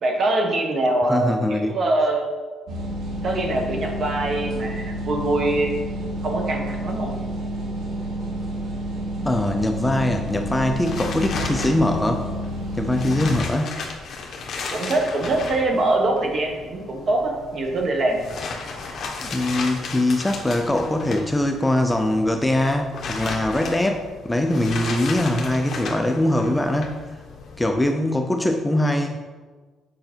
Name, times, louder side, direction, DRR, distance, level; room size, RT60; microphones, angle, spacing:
voice 1, 0.0-2.3 3.2-5.7 6.2-7.1 14.7-18.2, right 2 dB, 45° right, 2 dB, 1.4 m, -23 dB
voice 2, 1.1-1.8 9.2-12.3 12.8-13.8 19.2-27.0 27.6-29.2, left 1 dB, 10° left, 4 dB, 0.5 m, -22 dB
sound 1, 2.7-13.4, right 1 dB, 75° right, 1.8 m, -30 dB
sound 2, 10.4-27.7, left 4 dB, 50° left, 1.3 m, -35 dB
7.7 x 5.2 x 4.5 m, 1.4 s
cardioid pair, 125°, 0 cm